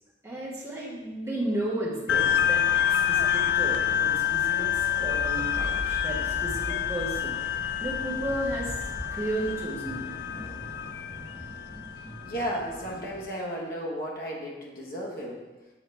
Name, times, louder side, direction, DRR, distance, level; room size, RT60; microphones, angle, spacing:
voice 1, 0.2-10.2, right 1 dB, 15° right, -7 dB, 1.3 m, -34 dB
sound 1, 2.1-13.0, left 10 dB, 70° left, 0.3 m, -28 dB
sound 2, 4.5-13.2, equal, 35° right, 1.7 m, -41 dB
voice 2, 12.3-15.4, equal, 55° left, -3 dB, 1.2 m, -34 dB
7.5 x 3.8 x 3.3 m, 1.2 s
head